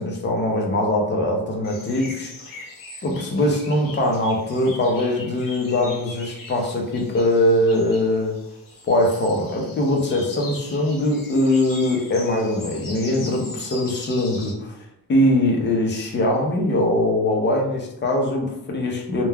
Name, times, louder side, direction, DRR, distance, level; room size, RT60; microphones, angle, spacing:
voice 1, 0.0-2.3 3.0-8.4 8.9-14.7 15.1-19.3, left 1 dB, 30° left, 1 dB, 0.5 m, -21 dB
sound 1, 1.6-14.5, left 2 dB, 55° left, 0.8 m, -40 dB
3.2 x 2.2 x 2.2 m, 0.82 s
cardioid pair, 160°, 39 cm